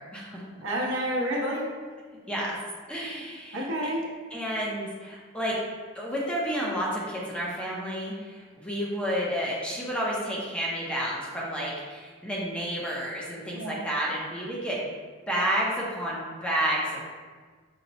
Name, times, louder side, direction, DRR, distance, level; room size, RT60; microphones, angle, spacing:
voice 1, 0.0-0.4 2.3-2.6 2.9-3.6 4.3-5.6 5.9-14.9 15.3-17.0, equal, 5° left, -5 dB, 0.6 m, -30 dB
voice 2, 0.6-1.7 3.5-4.1 13.5-13.7, equal, 65° right, -3 dB, 0.9 m, -29 dB
5.6 x 2.2 x 4.0 m, 1.5 s
head